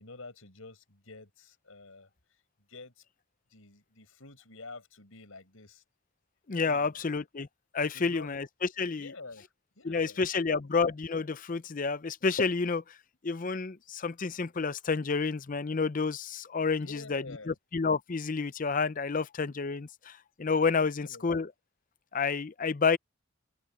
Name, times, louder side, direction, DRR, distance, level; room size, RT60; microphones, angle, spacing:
voice 1, 0.0-2.1 2.7-3.0 3.5-5.8 6.6-7.0 7.8-8.3 9.0-9.5 9.8-10.7 16.8-17.6 20.8-21.4, left 3 dB, 90° left, 5.4 m, -49 dB
voice 2, 6.5-7.5 7.7-9.1 9.8-12.8 13.2-21.5 22.1-23.0, left 4 dB, 40° left, 0.6 m, -30 dB
open air
head